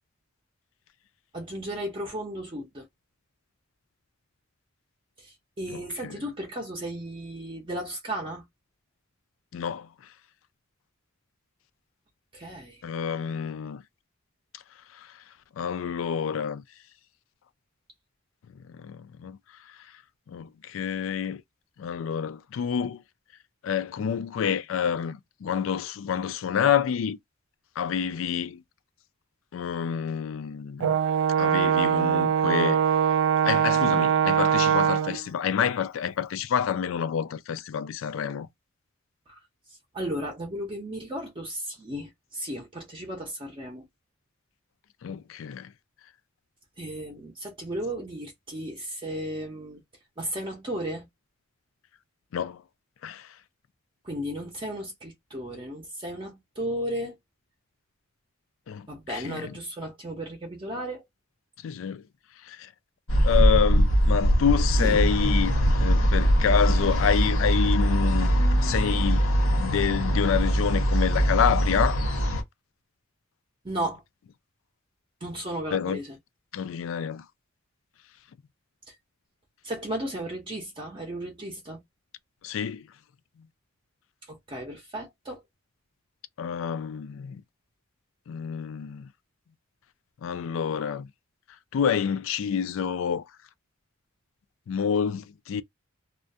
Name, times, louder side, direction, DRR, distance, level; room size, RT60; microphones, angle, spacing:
voice 1, 1.3-2.9 5.2-8.5 12.3-12.8 39.3-39.4 39.7-43.9 46.8-49.8 50.2-51.1 54.0-57.2 58.9-61.1 64.8-65.0 73.6-74.0 75.2-76.2 78.9-79.0 79.6-81.8 84.3-85.4, right 1 dB, 25° right, 0.6 m, -35 dB
voice 2, 5.7-6.1 9.5-10.1 12.8-13.8 14.5-14.6 14.9-15.2 15.5-16.6 18.6-20.0 20.3-21.4 21.8-23.0 23.6-27.2 27.8-28.6 29.5-30.9 31.4-33.1 33.4-38.5 45.0-45.7 52.3-52.6 53.0-53.4 58.7-59.5 61.6-62.0 62.4-62.7 63.2-65.5 65.8-69.2 69.5-72.0 75.7-76.0 76.5-77.3 82.4-82.9 83.4-83.5 86.4-87.4 88.3-89.1 90.2-91.1 91.7-93.2 94.7-95.6, left 7 dB, 65° left, 0.3 m, -28 dB
Brass instrument, 30.8-35.2, right 8 dB, 75° right, 0.3 m, -22 dB
sound 1, 63.1-72.4, equal, 90° left, 1.0 m, -22 dB
2.3 x 2.1 x 2.6 m
head